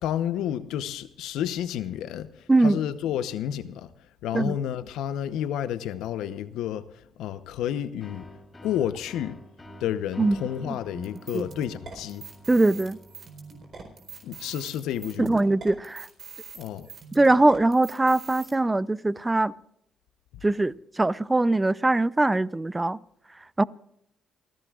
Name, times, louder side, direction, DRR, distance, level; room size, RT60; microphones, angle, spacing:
voice 1, 0.0-3.9 4.2-6.9 7.2-8.3 8.6-9.4 9.8-12.3 14.2-15.3 16.5-16.9, left 10 dB, 90° left, 0.9 m, -30 dB
voice 2, 2.5-2.8 4.3-4.6 10.2-10.4 10.7-11.0 11.3-11.4 12.5-13.0 15.2-16.1 17.1-19.5 20.4-23.0 23.6-23.7, right 2 dB, 15° right, 0.5 m, -22 dB
sound 1, 8.0-15.5, equal, 20° left, 3.9 m, -49 dB
sound 2, 11.0-18.5, right 5 dB, 50° right, 4.3 m, -44 dB
29.5 x 15.5 x 2.4 m
cardioid pair, 90°, 0 cm